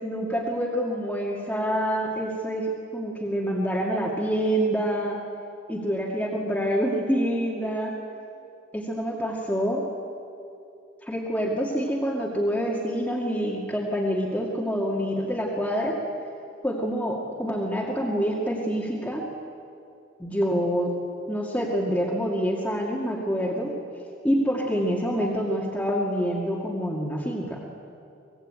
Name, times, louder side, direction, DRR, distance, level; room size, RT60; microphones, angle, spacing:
voice 1, 0.0-5.2 5.7-7.9 8.7-9.8 11.0-16.0 16.6-19.2 20.2-21.0 21.3-23.7 24.2-27.6, equal, 5° left, -4 dB, 2.2 m, -26 dB
24.5 x 20.5 x 8.9 m, 2.6 s
head